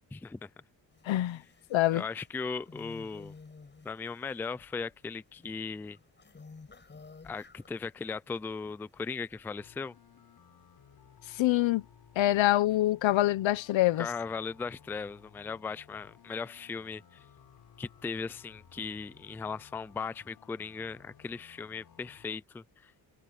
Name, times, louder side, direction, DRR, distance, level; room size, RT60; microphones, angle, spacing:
voice 1, 0.1-0.5 1.9-3.3 3.8-6.0 7.2-9.9 14.0-17.2 17.8-22.9, left 5 dB, 5° left, 0.3 m, -38 dB
sound 1, 0.9-8.2 8.5-9.5, left 4 dB, 25° left, 6.4 m, -53 dB
voice 2, 1.1-1.4 1.7-2.0 11.4-11.8 12.2-14.1, left 15 dB, 85° left, 1.1 m, -25 dB
sound 2, 9.6-22.4, left 8 dB, 55° left, 5.0 m, -58 dB
cardioid pair, 150°, 45 cm